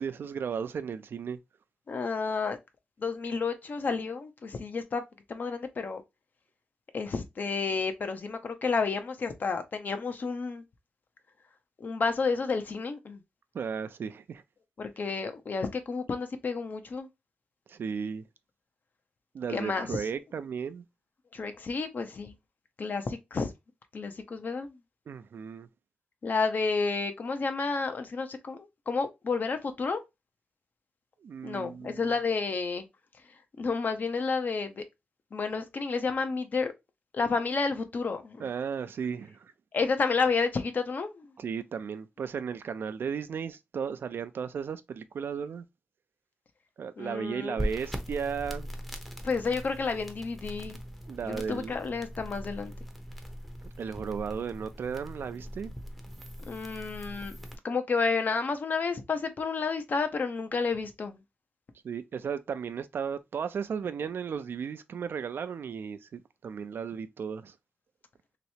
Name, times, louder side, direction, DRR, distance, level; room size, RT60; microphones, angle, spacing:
voice 1, 0.0-1.4 13.5-14.4 17.7-18.2 19.3-20.9 25.1-25.7 31.2-32.0 38.4-39.5 41.4-45.6 46.8-48.7 51.1-51.7 53.8-55.7 61.8-67.6, right 6 dB, 75° right, 0.4 m, -35 dB
voice 2, 1.9-2.6 3.0-5.0 5.3-6.0 6.9-10.6 11.8-13.2 14.8-17.1 19.5-19.9 21.3-22.3 22.8-23.5 23.9-24.8 26.2-30.0 31.4-32.9 33.6-34.8 35.3-36.7 37.1-38.4 39.7-41.3 47.0-47.6 49.2-50.8 51.2-52.7 56.5-57.3 57.6-61.2, left 4 dB, 55° left, 0.7 m, -30 dB
sound 1, 47.6-57.5, equal, ahead, 0.7 m, -40 dB
3.2 x 3.0 x 2.7 m
wide cardioid pair, 135°, 4 cm